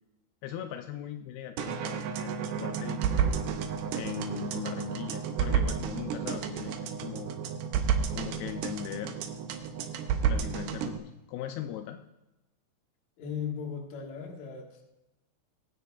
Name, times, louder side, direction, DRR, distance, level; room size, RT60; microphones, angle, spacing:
voice 1, 0.4-3.0 3.9-6.7 7.0-7.4 8.1-9.2 10.3-12.0, left 12 dB, 85° left, 6 dB, 2.6 m, -39 dB
sound 1, 1.6-11.0, right 7 dB, 80° right, 2.7 m, -31 dB
voice 2, 3.2-3.5 8.6-8.7 13.2-14.8, left 7 dB, 55° left, 1 dB, 2.4 m, -38 dB
22.0 x 9.5 x 2.3 m, 0.97 s
omnidirectional pair, 4.5 m